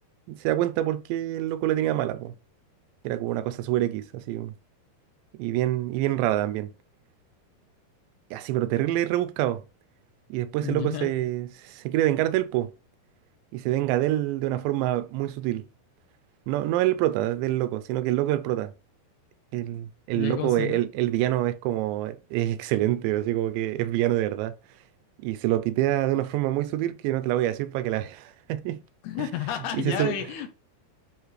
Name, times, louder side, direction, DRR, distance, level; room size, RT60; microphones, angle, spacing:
voice 1, 0.3-2.3 3.0-4.5 5.4-6.7 8.3-9.6 10.3-12.7 13.5-15.6 16.5-18.7 19.5-24.6 25.2-28.8 29.2-29.3 29.6-30.2, right 14 dB, 85° right, 2.9 m, -26 dB
voice 2, 10.6-11.1 20.2-20.8 29.0-30.5, left 11 dB, 75° left, 2.6 m, -31 dB
10.5 x 3.6 x 3.1 m
omnidirectional pair, 5.0 m